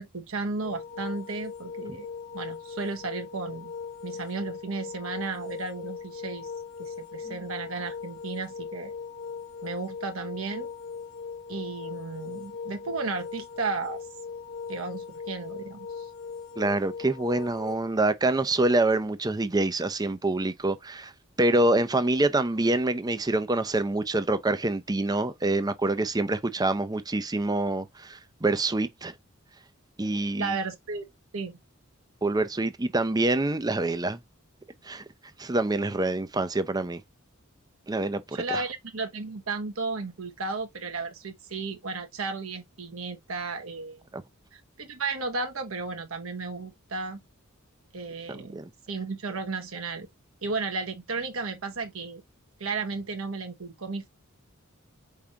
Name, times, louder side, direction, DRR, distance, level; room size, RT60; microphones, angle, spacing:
voice 1, 0.0-2.1 2.3-3.7 4.0-6.5 6.8-8.9 9.6-10.7 11.5-14.0 14.7-16.1 30.4-31.1 31.3-31.6 38.3-44.0 44.5-47.2 47.9-48.6 48.9-50.1 50.4-52.2 52.6-54.1, right 3 dB, 75° right, 1.2 m, -34 dB
sound 1, 0.6-17.8, left 5 dB, 65° left, 1.1 m, -39 dB
voice 2, 16.6-21.1 21.4-29.1 30.0-30.6 32.2-34.2 34.8-35.0 35.4-37.0 37.9-38.6 48.5-48.6, right 2 dB, 20° right, 0.5 m, -26 dB
4.8 x 3.6 x 2.7 m
head